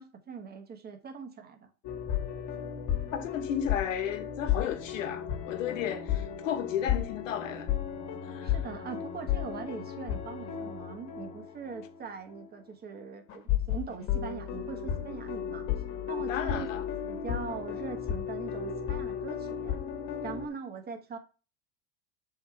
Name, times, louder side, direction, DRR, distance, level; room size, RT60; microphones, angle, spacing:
voice 1, 0.0-1.7 8.4-15.6 16.1-16.7 17.1-19.8 20.2-21.2, right 6 dB, 25° right, 1.4 m, -41 dB
sound 1, 1.8-12.0 12.3-12.4 13.3-20.5, left 9 dB, 45° left, 1.5 m, -34 dB
voice 2, 3.1-7.7 8.3-8.5 16.3-16.8, left 9 dB, 85° left, 1.1 m, -33 dB
6.9 x 4.0 x 4.5 m
supercardioid pair, 105°, 38 cm